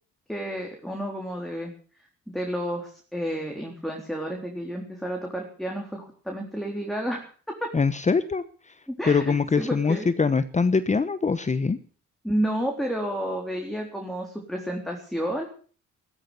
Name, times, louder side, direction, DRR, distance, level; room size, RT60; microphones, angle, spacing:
voice 1, 0.3-1.7 2.3-7.7 8.9-10.1 12.2-15.5, equal, ahead, 1 dB, 4.0 m, -31 dB
voice 2, 7.7-8.4 9.1-11.8, left 4 dB, 25° left, 12 dB, 1.0 m, -23 dB
15.0 x 13.0 x 7.0 m, 0.43 s
cardioid pair, 90°, 30 cm